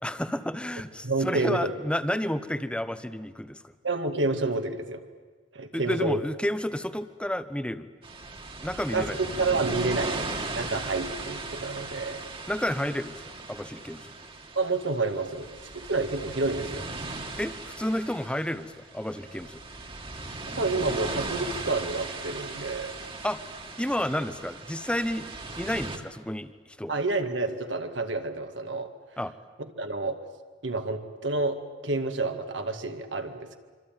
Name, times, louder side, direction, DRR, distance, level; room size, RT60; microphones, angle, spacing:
voice 1, 0.0-3.6 5.7-7.9 8.6-9.2 12.5-13.2 13.5-14.1 17.4-19.6 23.2-23.4 23.8-25.3 25.6-26.9 29.2-29.3, left 1 dB, 5° left, 11 dB, 1.0 m, -31 dB
voice 2, 1.0-1.7 3.8-5.0 5.5-6.2 8.9-9.1 9.4-12.2 14.6-16.9 20.5-22.9 26.9-28.9 29.6-30.2 30.6-33.6, right 3 dB, 65° right, 6 dB, 2.1 m, -29 dB
sound 1, 8.0-26.0, right 2 dB, 30° right, 2.2 m, -37 dB
25.5 x 25.5 x 9.1 m, 1.4 s
head